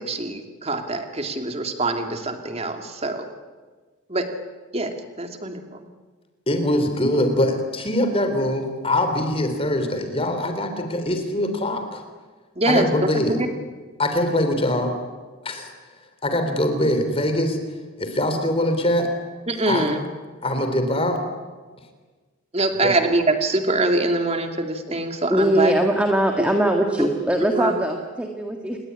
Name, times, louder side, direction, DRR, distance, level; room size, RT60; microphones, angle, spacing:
voice 1, 0.0-3.3 4.1-4.3 4.7-4.9 5.2-5.6 12.6-12.9 13.1-13.5 19.5-20.0 22.5-25.7 27.5-27.7, right 2 dB, 30° right, 6 dB, 2.5 m, -23 dB
voice 2, 6.5-12.0 12.7-13.4 14.0-15.0 15.4-15.7 16.2-17.6 18.0-19.1 19.7-19.9 20.4-21.2 22.8-22.9, left 1 dB, 25° left, 7 dB, 3.9 m, -23 dB
voice 3, 25.3-28.8, right 1 dB, 5° right, 2 dB, 1.8 m, -21 dB
28.0 x 21.0 x 9.9 m, 1.4 s
head